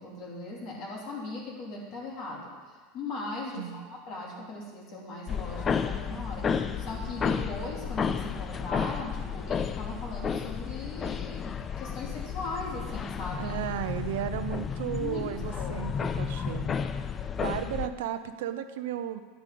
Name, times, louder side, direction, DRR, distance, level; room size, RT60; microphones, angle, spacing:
voice 1, 0.0-13.5 14.9-15.2 15.5-15.8 17.4-17.6, left 2 dB, 45° left, -3 dB, 2.8 m, -39 dB
voice 2, 3.5-3.9 13.4-16.8 17.4-19.2, right 11 dB, 80° right, 10 dB, 0.6 m, -34 dB
sound 1, 5.3-17.9, left 6 dB, 20° left, 0.4 m, -32 dB
9.8 x 9.8 x 3.9 m, 1.4 s
supercardioid pair, 145°, 0 cm